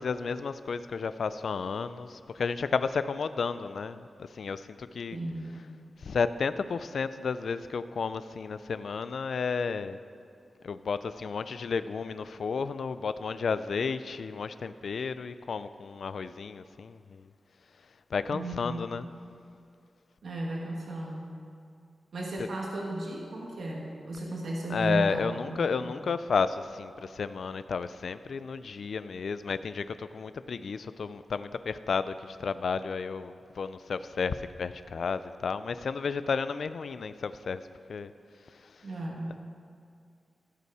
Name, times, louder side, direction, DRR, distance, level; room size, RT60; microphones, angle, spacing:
voice 1, 0.0-5.2 6.0-10.0 10.6-17.3 18.1-19.1 24.7-37.6 37.9-38.1 38.5-38.9, left 5 dB, 70° left, 13 dB, 0.3 m, -32 dB
voice 2, 5.1-5.5 18.3-18.9 20.2-21.3 22.1-26.0 38.8-39.4, right 1 dB, 80° right, -2 dB, 1.3 m, -35 dB
15.0 x 5.6 x 4.7 m, 2.4 s
wide cardioid pair, 125°, 0 cm